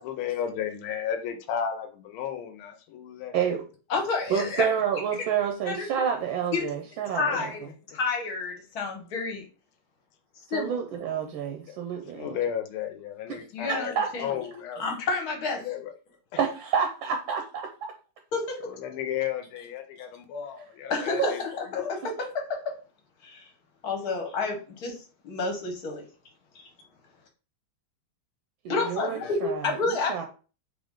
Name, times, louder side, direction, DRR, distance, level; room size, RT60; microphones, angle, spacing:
voice 1, 0.0-3.4 7.3-7.5 11.7-11.8 12.1-14.8 15.6-15.9 18.6-21.4 21.7-21.9 28.7-28.9 29.2-29.3, left 9 dB, 80° left, 6 dB, 1.5 m, -33 dB
voice 2, 3.3-3.6 4.3-7.5 10.5-12.4 13.3-13.4 13.7-14.1 16.4-17.6 21.2-21.3 22.0-22.2 28.6-30.2, right 7 dB, 75° right, 4 dB, 1.3 m, -29 dB
voice 3, 3.9-4.7 5.7-5.9 6.5-6.6 7.1-7.6 7.9-9.4 10.5-10.7 13.5-14.2 14.8-15.6 18.3-18.4 20.9-21.3 21.7-22.0 23.2-23.5 23.8-24.9 25.2-26.0 26.5-26.7 28.7-30.2, left 4 dB, 55° left, 2 dB, 1.3 m, -29 dB
3.8 x 3.4 x 3.6 m, 0.36 s
omnidirectional pair, 2.4 m